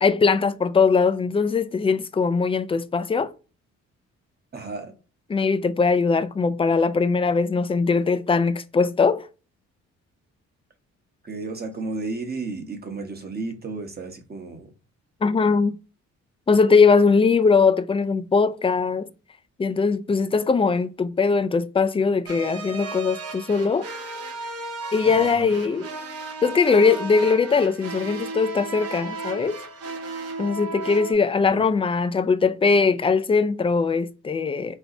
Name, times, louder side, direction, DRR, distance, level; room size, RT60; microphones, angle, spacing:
voice 1, 0.0-3.3 5.3-9.3 15.2-15.8 16.5-19.1 19.6-23.9 24.9-25.9 26.4-29.6 30.4-34.8, left 4 dB, 20° left, 0.4 m, -20 dB
voice 2, 4.5-4.9 11.2-14.7 25.0-25.5 31.5-31.6, right 3 dB, 30° right, 1.1 m, -33 dB
sound 1, 22.3-31.1, right 3 dB, 50° right, 0.9 m, -34 dB
4.7 x 3.8 x 2.6 m
cardioid pair, 90°, 30 cm